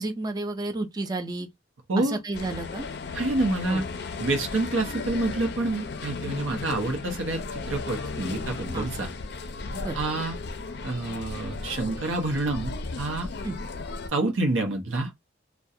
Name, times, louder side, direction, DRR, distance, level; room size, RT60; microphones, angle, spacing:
voice 1, 0.0-1.5 2.0-2.9 3.7-3.8 8.7-8.9 9.7-10.0 13.4-13.5, right 2 dB, 20° right, 0.4 m, -31 dB
sound 1, 2.3-14.1, left 3 dB, 55° left, 0.4 m, -35 dB
voice 2, 3.1-3.8 4.2-9.1 9.9-10.4 10.8-13.3 14.1-15.1, right 2 dB, 85° right, 0.7 m, -28 dB
2.4 x 2.1 x 2.7 m
head